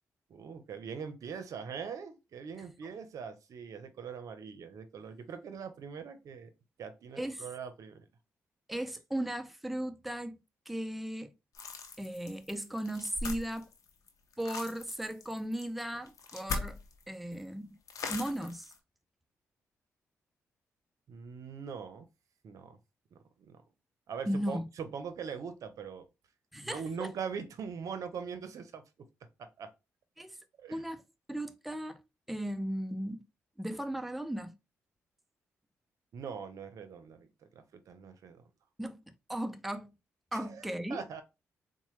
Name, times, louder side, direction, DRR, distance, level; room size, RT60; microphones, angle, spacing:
voice 1, 0.3-6.5 6.8-8.0 21.1-22.1 22.4-22.8 23.1-23.6 24.1-26.1 26.6-28.8 29.4-29.7 30.6-30.8 36.1-38.4 40.3-41.2, right 6 dB, 70° right, 0.6 m, -42 dB
voice 2, 8.7-10.4 10.7-11.3 12.0-13.7 14.4-17.8 18.1-18.7 24.3-24.6 26.5-27.1 30.2-30.4 30.7-31.0 31.3-32.0 32.3-33.2 33.6-34.6 38.8-39.0 39.3-39.9 40.3-41.0, right 1 dB, ahead, 0.4 m, -36 dB
sound 1, 11.5-17.0 17.3-17.4 17.9-18.8, left 4 dB, 70° left, 0.7 m, -40 dB
4.1 x 2.1 x 3.1 m
supercardioid pair, 55°, 6 cm